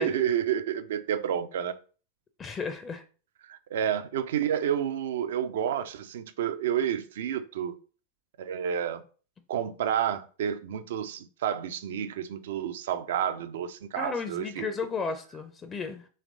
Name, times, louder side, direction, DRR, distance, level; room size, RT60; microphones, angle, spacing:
voice 1, 0.0-1.8 3.5-7.8 8.4-9.0 9.5-14.7, right 9 dB, 60° right, 0.4 m, -30 dB
voice 2, 2.4-3.0 14.0-16.1, left 4 dB, 20° left, 0.5 m, -34 dB
3.3 x 3.2 x 3.7 m
figure-of-eight pair, 90°, 0 cm